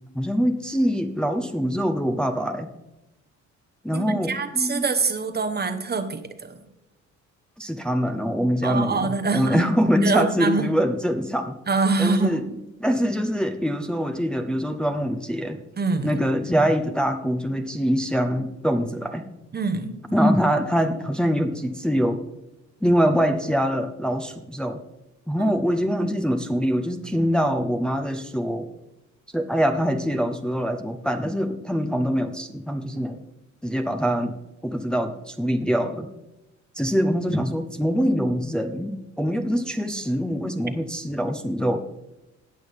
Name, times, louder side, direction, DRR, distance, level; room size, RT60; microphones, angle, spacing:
voice 1, 0.1-2.7 3.8-4.8 7.6-11.6 12.0-12.5 12.8-15.6 16.0-19.2 20.1-22.2 22.8-24.8 25.3-28.7 29.3-33.2 33.6-34.3 34.6-36.1 36.7-41.8, equal, 5° left, 5 dB, 0.8 m, -24 dB
voice 2, 3.9-6.5 8.6-9.6 10.0-10.7 11.7-12.4 15.8-16.2 19.5-20.0 25.4-25.5, right 4 dB, 35° right, 9 dB, 1.0 m, -25 dB
18.0 x 6.2 x 3.5 m, 0.96 s
cardioid pair, 90°, 30 cm